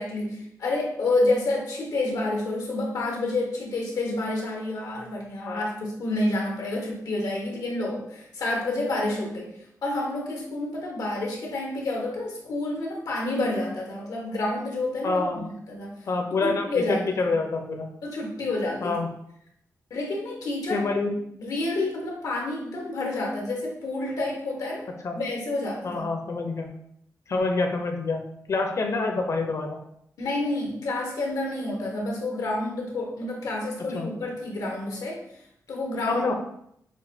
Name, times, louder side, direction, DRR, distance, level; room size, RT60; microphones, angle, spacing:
voice 1, 0.0-9.5 9.8-15.9 16.4-17.0 18.0-19.0 19.9-20.9 21.4-24.8 25.1-26.1 30.2-35.2 35.7-36.3, left 2 dB, 90° left, -1 dB, 1.3 m, -29 dB
voice 2, 15.0-15.5 16.1-17.9 18.8-19.1 20.7-21.1 25.0-25.2 25.8-26.7 27.3-28.2 28.5-29.8 33.9-34.1 36.0-36.3, left 3 dB, 55° left, 3 dB, 0.7 m, -27 dB
6.3 x 2.5 x 2.7 m, 0.73 s
cardioid pair, 100°, 6 cm